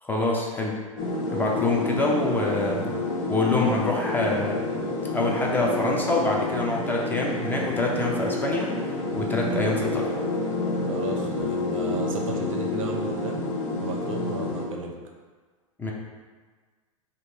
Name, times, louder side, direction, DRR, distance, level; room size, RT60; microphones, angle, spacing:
voice 1, 0.0-0.8 1.3-2.9 3.3-4.6 5.1-10.1 15.8-15.9, left 2 dB, 10° left, -1 dB, 0.4 m, -26 dB
sound 1, 1.0-14.6, left 2 dB, 30° left, 1.2 m, -29 dB
voice 2, 10.9-13.4 13.8-14.9, right 4 dB, 70° right, 1 dB, 0.6 m, -34 dB
3.6 x 2.5 x 2.9 m, 1.5 s
figure-of-eight pair, 95°, 17 cm